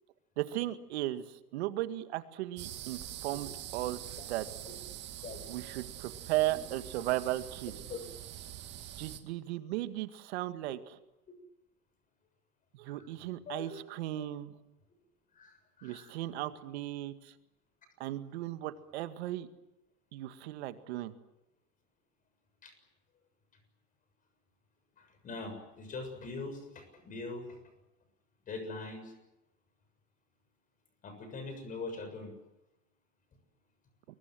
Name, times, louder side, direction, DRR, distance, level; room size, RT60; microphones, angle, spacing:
voice 1, 0.4-1.2 1.5-4.0 4.3-4.5 5.5-7.7 9.0-11.0 12.7-14.5 15.8-17.3 18.0-19.5 20.1-21.1, right 15 dB, 45° right, 10 dB, 2.0 m, -36 dB
sound 1, 2.6-9.2, right 12 dB, 25° right, 2.1 m, -44 dB
voice 2, 13.5-13.8 14.2-14.3 15.4-16.1 22.6-22.7 25.0-27.5 28.5-29.1 31.0-32.3, left 3 dB, 15° left, 8 dB, 6.8 m, -42 dB
29.0 x 22.5 x 7.8 m, 0.92 s
hypercardioid pair, 145°, 46 cm